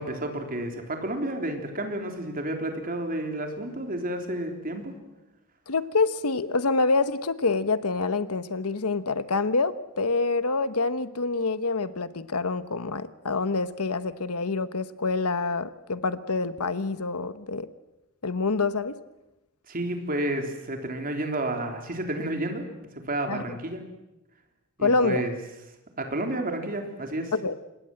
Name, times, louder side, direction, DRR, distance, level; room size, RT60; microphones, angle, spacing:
voice 1, 0.0-4.9 19.7-22.7 22.9-23.8 24.8-25.3 26.0-27.3, right 1 dB, 40° right, 4 dB, 3.6 m, -31 dB
voice 2, 5.7-17.7 18.2-18.9 23.3-23.6 24.8-25.2 27.3-27.5, left 3 dB, 80° left, 13 dB, 1.2 m, -26 dB
26.5 x 21.0 x 7.8 m, 0.98 s
head